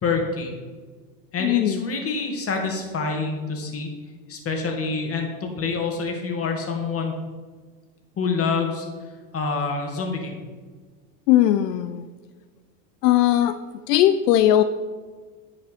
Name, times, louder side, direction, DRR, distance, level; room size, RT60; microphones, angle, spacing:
voice 1, 0.0-0.5 1.3-3.9 4.3-7.1 8.2-8.9 9.3-10.3, left 4 dB, 30° left, 2 dB, 2.1 m, -26 dB
voice 2, 1.4-1.8 11.3-12.0 13.0-13.6 13.9-14.6, left 12 dB, 80° left, 11 dB, 0.6 m, -18 dB
9.5 x 5.1 x 5.1 m, 1.4 s
hypercardioid pair, 100°, 48 cm